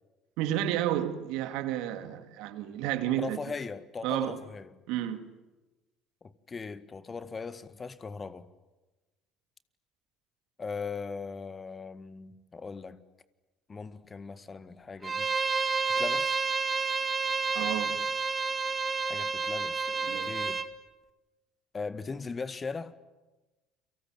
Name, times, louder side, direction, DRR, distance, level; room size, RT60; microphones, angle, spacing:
voice 1, 0.4-3.4 4.0-4.4 4.9-5.3 17.5-18.0 20.1-20.3, right 12 dB, 65° right, 2.2 m, -31 dB
voice 2, 3.2-4.8 6.2-8.5 10.6-13.0 13.7-15.3 16.0-16.4 19.1-19.9 20.3-20.6 21.7-22.9, left 4 dB, 30° left, 1.7 m, -39 dB
Bowed string instrument, 15.0-20.7, right 4 dB, 30° right, 2.1 m, -30 dB
30.0 x 25.0 x 7.6 m
hypercardioid pair, 55°, 0 cm